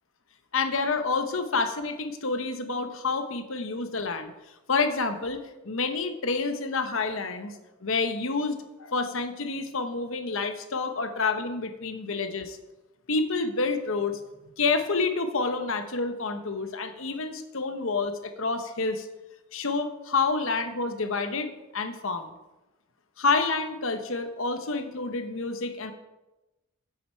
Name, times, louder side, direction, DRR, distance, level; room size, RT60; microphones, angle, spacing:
voice 1, 0.5-4.3 4.7-5.4 5.6-12.6 13.1-14.2 14.6-19.1 19.5-22.3 23.2-25.9, left 4 dB, 65° left, 8 dB, 0.9 m, -28 dB
9.6 x 7.9 x 4.4 m, 1.0 s
head